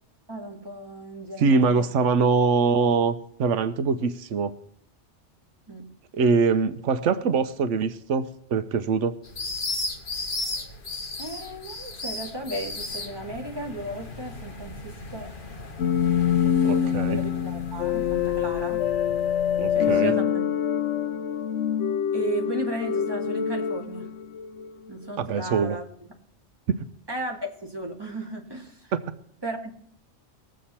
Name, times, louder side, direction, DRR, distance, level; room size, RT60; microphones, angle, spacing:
voice 1, 0.3-1.9 5.7-5.9 11.2-15.3 16.4-18.8 19.7-20.5 22.1-24.2 24.9-25.9 27.1-28.9 29.4-29.7, right 2 dB, 20° right, 0 dB, 2.2 m, -35 dB
voice 2, 1.4-4.5 6.1-9.2 16.6-17.2 19.6-20.1 25.2-25.8 28.9-29.0, right 5 dB, 90° right, 11 dB, 1.1 m, -23 dB
sound 1, 9.2-20.0, left 2 dB, 45° left, 1.5 m, -36 dB
sound 2, 15.8-24.8, left 9 dB, 75° left, 1.0 m, -25 dB
20.5 x 7.6 x 4.3 m, 0.68 s
omnidirectional pair, 1.2 m